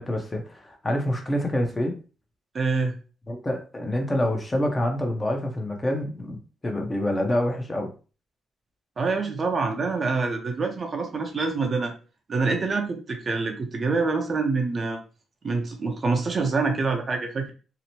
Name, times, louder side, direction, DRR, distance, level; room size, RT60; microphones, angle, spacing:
voice 1, 0.0-2.0 3.3-7.9, left 1 dB, 20° left, 3 dB, 0.7 m, -27 dB
voice 2, 2.5-2.9 9.0-11.9 12.3-15.0 15.4-17.5, right 4 dB, 40° right, 4 dB, 0.5 m, -26 dB
2.9 x 2.0 x 2.8 m, 0.36 s
cardioid pair, 90°, 0 cm